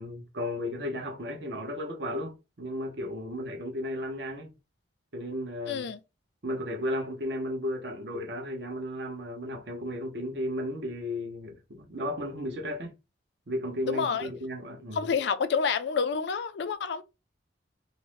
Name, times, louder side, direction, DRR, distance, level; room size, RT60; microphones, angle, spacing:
voice 1, 0.0-4.5 5.1-5.8 6.4-12.9 13.5-15.1, left 1 dB, 60° right, 0.8 m, -34 dB
voice 2, 5.7-6.0 13.9-14.3 14.9-17.0, left 6 dB, 65° left, 0.4 m, -28 dB
2.6 x 2.1 x 3.0 m
head